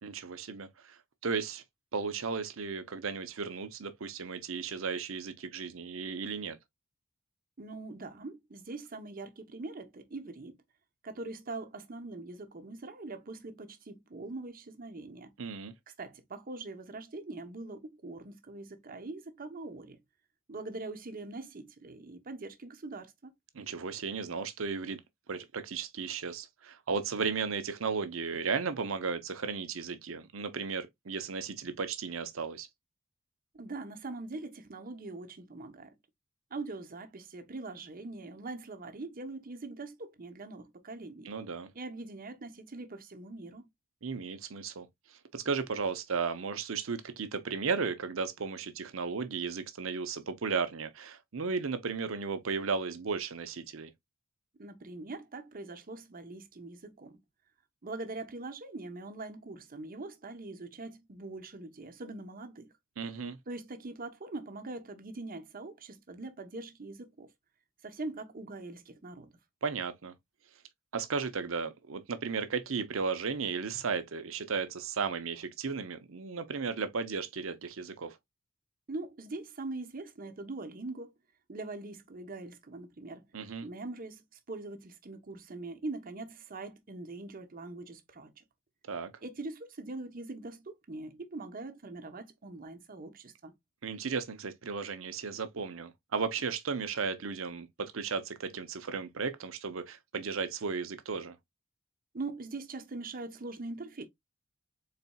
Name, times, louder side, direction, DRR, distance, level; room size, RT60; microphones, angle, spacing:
voice 1, 0.0-1.0 1.2-1.6 1.9-6.6 15.4-15.7 23.5-25.0 25.3-32.7 41.2-41.7 44.0-44.9 45.3-53.9 63.0-63.4 69.6-70.1 70.9-78.2 83.3-83.7 88.9-89.1 93.8-101.3, right 5 dB, 75° right, 0.7 m, -35 dB
voice 2, 7.6-10.6 11.0-15.3 16.0-20.0 20.5-23.3 33.5-35.9 36.5-41.3 41.7-43.7 54.6-57.2 57.8-62.7 63.5-67.3 67.8-69.3 78.9-81.1 81.5-83.2 83.6-88.4 89.2-93.5 102.1-104.1, right 2 dB, 45° right, 0.8 m, -42 dB
4.1 x 4.0 x 2.3 m
head